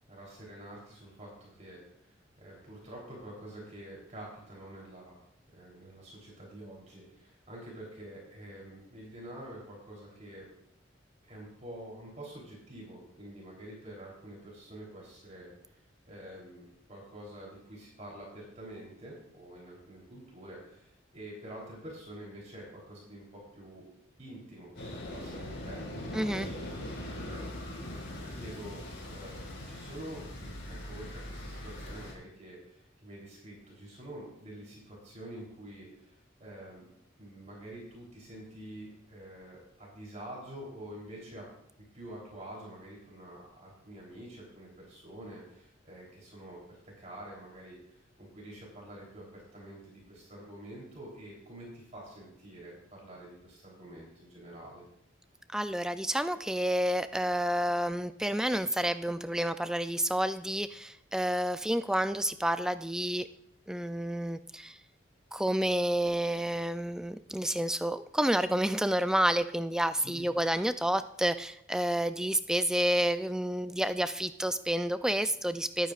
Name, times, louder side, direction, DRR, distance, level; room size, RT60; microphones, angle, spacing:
voice 1, 0.1-5.2 5.5-10.5 11.2-15.8 16.1-23.9 24.2-24.7 25.1-27.9 28.2-36.1 36.4-36.9 37.2-41.5 41.9-54.8 70.0-70.2, right 1 dB, 35° right, -3 dB, 3.6 m, -47 dB
sound 1, 24.7-32.1, left 1 dB, 65° left, 4.5 m, -41 dB
voice 2, 26.1-26.5 55.5-63.3 63.7-64.8 65.3-75.9, right 1 dB, 5° right, 11 dB, 0.3 m, -29 dB
21.0 x 9.3 x 2.5 m, 0.74 s
head